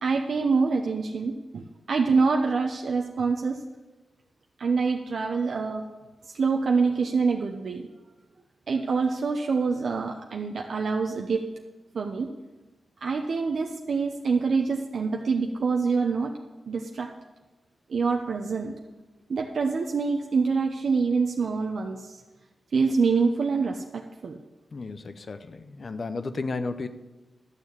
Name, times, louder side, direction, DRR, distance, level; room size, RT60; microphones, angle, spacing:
voice 1, 0.0-3.6 4.6-5.8 6.2-7.9 8.7-11.4 11.9-12.3 13.0-16.3 16.7-17.1 17.9-18.7 19.3-22.2 22.7-24.4, right 4 dB, 70° right, 2 dB, 0.9 m, -26 dB
voice 2, 24.7-26.9, left 3 dB, 50° left, 11 dB, 0.8 m, -33 dB
12.5 x 6.5 x 8.5 m, 1.2 s
wide cardioid pair, 95°, 0 cm